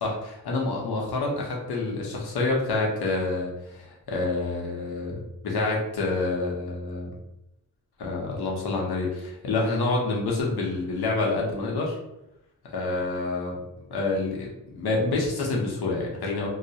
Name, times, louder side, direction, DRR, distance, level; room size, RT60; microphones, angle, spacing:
voice 1, 0.0-5.2 5.4-7.1 8.0-12.0 12.7-13.5 13.9-16.5, left 3 dB, 75° left, -1 dB, 0.7 m, -27 dB
2.2 x 2.1 x 2.6 m, 0.87 s
wide cardioid pair, 120°, 39 cm